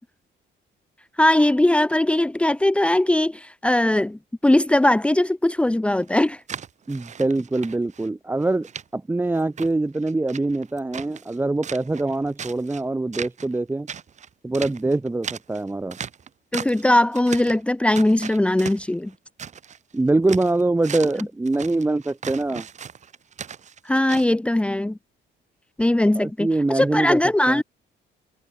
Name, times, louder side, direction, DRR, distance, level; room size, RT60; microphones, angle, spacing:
voice 1, 1.2-6.4 16.5-19.1 23.8-25.0 25.8-26.5 26.7-27.6, left 1 dB, 5° left, 1.6 m, -20 dB
sound 1, 5.9-8.1 8.4-8.8 9.2-11.4 11.6-12.8 13.1-13.6 13.9-16.9 17.1-17.6 17.9-19.8 20.1-24.3, right 7 dB, 35° right, 3.9 m, -37 dB
voice 2, 6.9-13.9 14.4-16.0 19.9-22.7 26.2-27.2 27.5-27.6, right 2 dB, 10° right, 1.8 m, -24 dB
cardioid pair, 160°, 20 cm